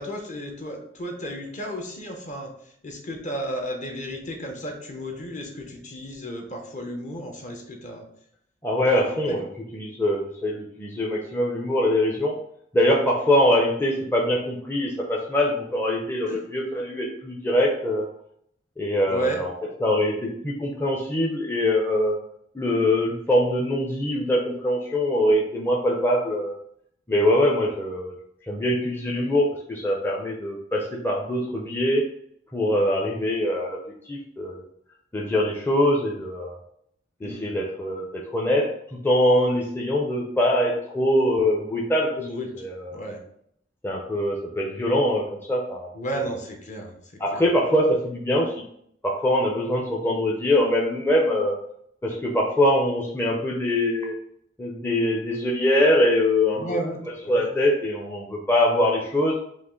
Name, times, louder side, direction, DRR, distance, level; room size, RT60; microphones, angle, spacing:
voice 1, 0.0-2.5 2.8-8.0 8.9-9.4 16.3-16.4 19.1-19.4 37.2-37.5 42.2-42.6 42.9-43.2 45.9-46.9 47.3-47.4 56.6-57.5, right 1 dB, 45° left, 3 dB, 0.8 m, -33 dB
voice 2, 8.6-12.4 12.7-18.1 18.8-19.5 19.8-22.2 22.5-26.6 27.1-28.1 28.5-32.1 32.5-33.8 34.1-34.7 35.1-36.6 37.2-38.7 39.0-42.1 42.5-43.0 43.8-45.9 46.2-46.3 47.2-48.5 49.0-51.5 52.0-54.1 54.6-59.4, left 1 dB, 10° left, -2 dB, 0.5 m, -23 dB
5.1 x 2.5 x 3.7 m, 0.69 s
head